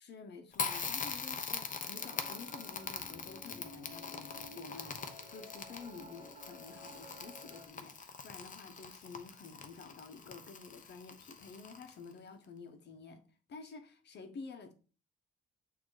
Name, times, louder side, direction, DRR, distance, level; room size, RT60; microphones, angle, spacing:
voice 1, 0.0-13.2 13.5-14.7, left 4 dB, 60° left, 1.2 m, -50 dB
Crackle, 0.5-12.1, left 5 dB, 40° left, 0.9 m, -42 dB
sound 1, 1.9-7.7, left 1 dB, 30° right, 1.8 m, -53 dB
6.4 x 3.0 x 4.9 m
cardioid pair, 90°, 20 cm